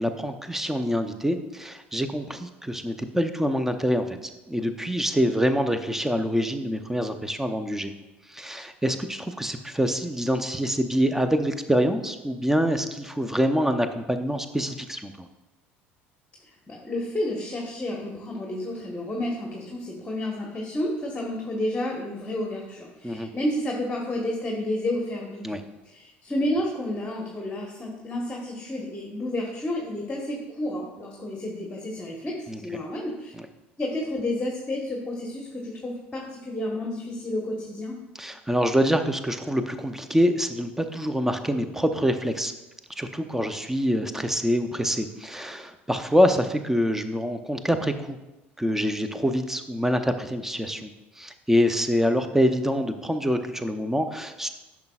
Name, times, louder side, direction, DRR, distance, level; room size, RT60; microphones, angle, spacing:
voice 1, 0.0-4.2 4.5-7.9 8.3-15.3 23.0-23.3 25.4-25.6 32.5-32.6 38.2-42.5 43.0-48.2 48.6-50.9 51.2-54.5, equal, 5° right, 8 dB, 0.7 m, -25 dB
voice 2, 16.5-25.6 25.8-33.3 33.8-37.9, left 1 dB, 20° left, -1 dB, 1.3 m, -31 dB
10.5 x 5.9 x 2.4 m, 1.0 s
figure-of-eight pair, 65°, 6 cm